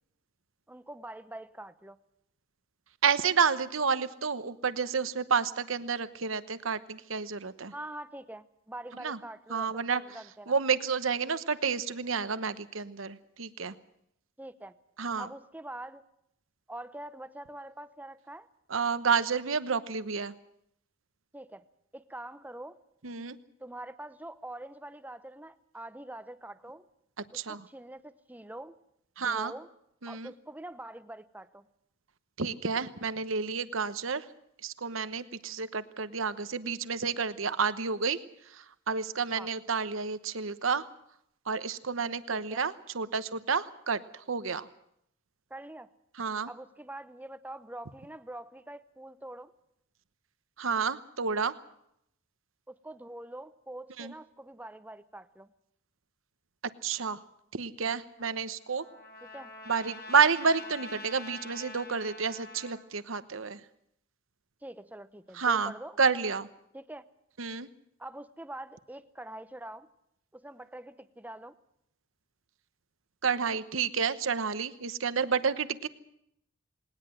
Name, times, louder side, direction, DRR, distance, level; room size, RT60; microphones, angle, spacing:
voice 1, 0.7-2.0 7.7-10.5 14.4-14.7 15.2-16.0 16.7-18.5 21.3-21.6 21.9-22.8 23.6-26.9 27.3-28.8 29.2-29.7 30.1-31.7 39.3-39.5 42.3-42.7 45.5-45.9 46.5-49.5 52.7-55.5 59.3-59.5 64.6-66.0 66.7-67.0 68.0-69.9 70.3-71.5, right 1 dB, 10° right, 13 dB, 0.8 m, -44 dB
voice 2, 3.0-7.7 9.0-9.2 9.5-10.0 10.5-13.8 15.0-15.3 18.7-20.3 23.0-23.4 27.3-27.7 29.2-29.5 30.0-30.3 32.4-34.3 34.6-38.2 38.5-40.9 41.5-44.7 46.2-46.5 50.6-51.6 54.0-54.1 56.8-57.2 57.5-58.9 59.7-63.6 65.3-65.7 66.0-66.5 67.4-67.7 73.2-75.9, right 5 dB, 70° right, 13 dB, 1.0 m, -30 dB
Trumpet, 58.2-62.8, left 2 dB, 50° left, 4.8 m, -45 dB
19.5 x 19.0 x 7.7 m, 0.76 s
head